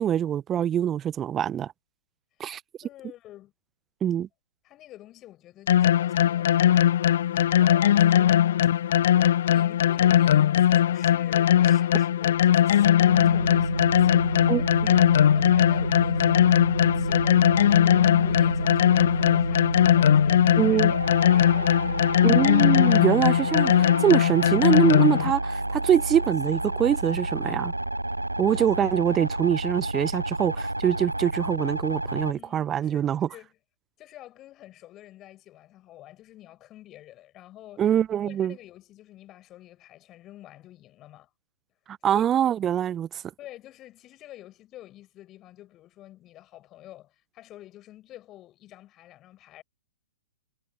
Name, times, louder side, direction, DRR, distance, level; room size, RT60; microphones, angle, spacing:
voice 1, 0.0-1.7 2.4-2.6 4.0-4.3 14.5-14.9 20.6-20.9 22.2-27.7 28.4-33.3 37.8-38.5 41.9-43.1, right 10 dB, 20° right, 1.0 m, -24 dB
voice 2, 2.8-3.5 4.6-7.0 7.3-8.7 9.5-22.4 32.3-33.6 34.0-37.9 38.2-41.3 42.1-42.3 43.4-49.6, left 14 dB, 25° left, 6.1 m, -48 dB
sound 1, 5.7-25.3, left 11 dB, 50° left, 1.1 m, -20 dB
sound 2, 13.1-32.3, right 1 dB, 85° right, 0.5 m, -30 dB
figure-of-eight pair, 115°, 0 cm